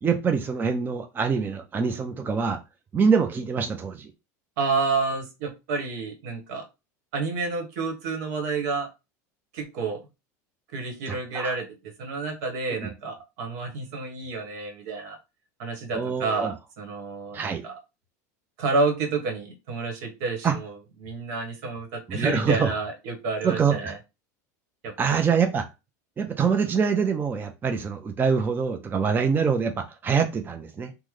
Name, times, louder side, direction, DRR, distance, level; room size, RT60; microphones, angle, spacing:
voice 1, 0.0-2.6 2.9-4.1 11.1-11.5 15.9-16.5 17.3-17.6 20.4-20.5 22.1-22.7 23.4-23.9 25.0-25.6 26.2-30.9, right 6 dB, 20° right, 0.4 m, -25 dB
voice 2, 4.6-6.6 7.1-8.9 9.5-10.1 10.7-15.2 15.6-17.8 18.6-24.0 24.8-25.3, right 3 dB, 70° right, 1.2 m, -30 dB
3.0 x 2.1 x 3.5 m
hypercardioid pair, 100°, 9 cm